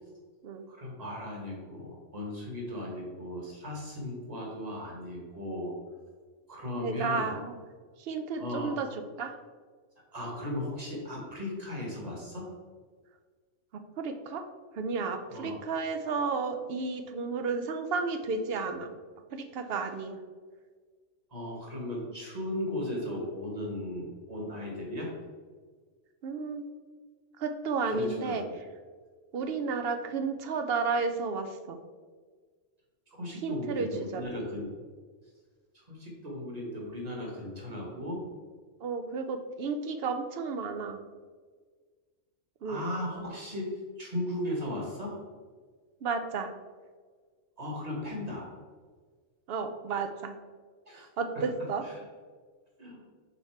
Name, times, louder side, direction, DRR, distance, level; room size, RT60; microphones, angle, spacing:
voice 1, 0.7-5.7 6.5-7.3 8.3-8.7 10.1-12.5 15.3-15.6 21.3-25.1 27.9-28.4 33.2-34.7 35.7-38.2 42.6-45.2 47.6-48.5 50.8-51.1 51.3-52.0 52.8-53.0, left 1 dB, 35° right, -2 dB, 1.5 m, -36 dB
voice 2, 6.8-7.6 8.0-8.9 9.2-9.4 14.0-14.4 14.8-18.9 19.3-20.2 26.2-26.6 27.4-28.4 29.3-31.8 33.4-33.9 34.1-34.3 38.8-41.0 42.6-42.8 46.0-46.5 49.5-50.3 50.9-51.8, right 4 dB, 60° right, 8 dB, 0.8 m, -32 dB
5.7 x 4.2 x 4.5 m, 1.5 s
omnidirectional pair, 1.2 m